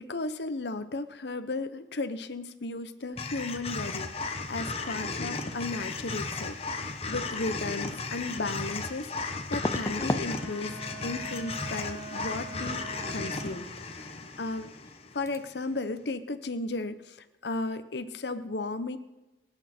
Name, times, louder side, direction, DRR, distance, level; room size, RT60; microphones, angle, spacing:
voice 1, 0.0-14.1 14.4-14.7 15.1-17.2 17.4-19.0, left 2 dB, 70° left, 10 dB, 0.9 m, -35 dB
sound 1, 3.2-15.5, left 3 dB, 35° left, 1.1 m, -35 dB
sound 2, 9.5-10.3 10.6-11.0 11.3-11.4 14.4-14.5 14.7-15.0 15.3-15.4, left 1 dB, 15° left, 0.5 m, -33 dB
Wind instrument woodwind instrument, 10.1-13.7, right 2 dB, 30° right, 6.5 m, -44 dB
26.0 x 8.8 x 4.4 m, 1.0 s
head